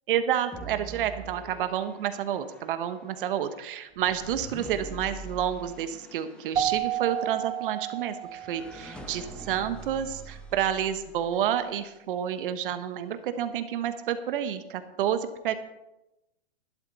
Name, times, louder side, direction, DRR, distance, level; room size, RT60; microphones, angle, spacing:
voice 1, 0.1-15.5, right 10 dB, 50° right, 10 dB, 1.3 m, -29 dB
sound 1, 0.5-11.8, right 2 dB, 5° left, 1.3 m, -45 dB
Keyboard (musical), 6.5-8.8, right 10 dB, 15° right, 0.6 m, -31 dB
12.5 x 11.5 x 4.1 m, 0.95 s
hypercardioid pair, 135°, 33 cm